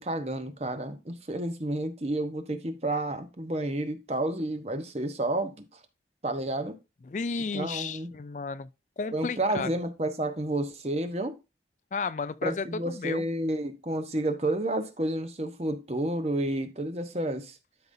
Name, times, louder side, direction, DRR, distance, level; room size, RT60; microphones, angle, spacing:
voice 1, 0.0-5.8 6.2-6.8 7.5-8.1 9.1-11.3 12.4-17.6, right 1 dB, 35° right, 1.0 m, -30 dB
voice 2, 7.0-8.7 9.0-9.7 11.9-13.3, left 4 dB, 40° left, 0.4 m, -33 dB
12.0 x 5.3 x 2.7 m
head